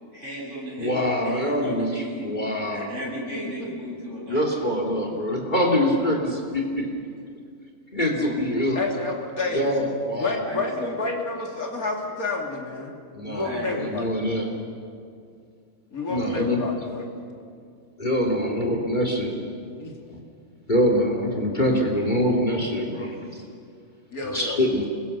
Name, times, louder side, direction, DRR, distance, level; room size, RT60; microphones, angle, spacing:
voice 1, 0.1-1.0 1.2-2.3 2.7-4.4 9.4-9.9 10.4-10.9 13.4-13.8, equal, 50° right, -4 dB, 8.1 m, -35 dB
voice 2, 0.8-2.9 4.3-6.9 7.9-8.8 9.5-10.4 13.1-14.5 16.1-16.6 18.0-19.5 20.1-20.2 20.7-23.2 24.2-24.8, equal, 30° left, 2 dB, 3.0 m, -24 dB
voice 3, 3.3-3.7 5.1-5.2 8.7-9.7 10.2-12.9 13.2-14.1 15.9-17.1 19.8-20.0 24.1-24.6, left 3 dB, 70° left, 1 dB, 3.4 m, -30 dB
29.0 x 22.5 x 6.9 m, 2.3 s
omnidirectional pair, 1.6 m